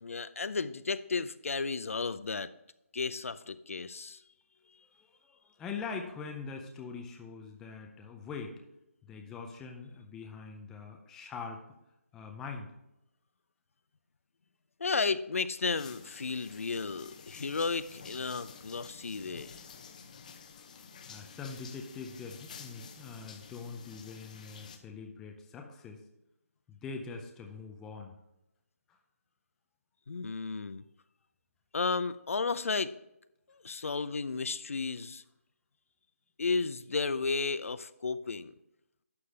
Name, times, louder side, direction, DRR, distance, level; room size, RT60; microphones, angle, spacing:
voice 1, 0.0-2.5 2.9-4.2 14.8-19.6 30.1-30.8 31.7-32.9 33.6-35.2 36.4-38.5, left 4 dB, 65° left, 14 dB, 0.6 m, -33 dB
voice 2, 5.0-8.6 9.0-11.6 12.1-12.7 20.5-20.6 21.1-26.0 26.7-28.1 28.9-29.0, left 5 dB, 5° left, 3 dB, 0.4 m, -43 dB
sound 1, 15.7-24.8, left 6 dB, 30° left, 0.8 m, -51 dB
11.5 x 7.0 x 3.4 m, 0.88 s
hypercardioid pair, 165°, 8 cm